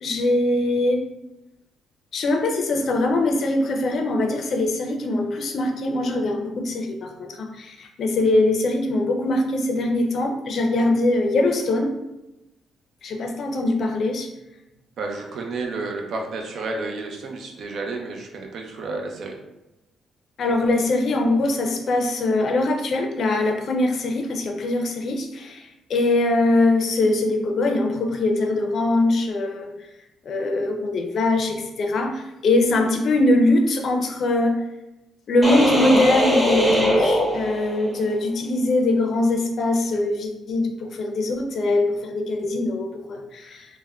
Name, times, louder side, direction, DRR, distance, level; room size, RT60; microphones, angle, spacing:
voice 1, 0.0-1.0 2.1-11.9 13.0-14.3 20.4-29.7 30.2-34.6 35.3-43.7, left 2 dB, 60° left, 2 dB, 0.4 m, -22 dB
voice 2, 15.0-19.4, right 3 dB, 65° right, 1 dB, 0.5 m, -31 dB
sound 1, 35.4-38.0, equal, 5° right, 0.7 m, -21 dB
3.4 x 2.1 x 2.3 m, 0.95 s
cardioid pair, 90°, 0 cm